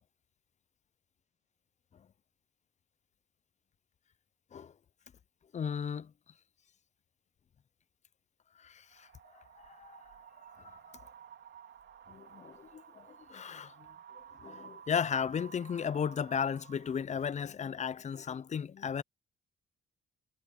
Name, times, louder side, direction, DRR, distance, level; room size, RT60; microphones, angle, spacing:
voice 1, 5.5-6.1 8.6-9.1 9.7-10.0 10.6-10.8 12.1-13.7 14.4-19.0, left 7 dB, 35° left, 0.6 m, -35 dB
Wind, 8.9-17.0, right 8 dB, 70° right, 4.1 m, -54 dB
cardioid pair, 90°, 20 cm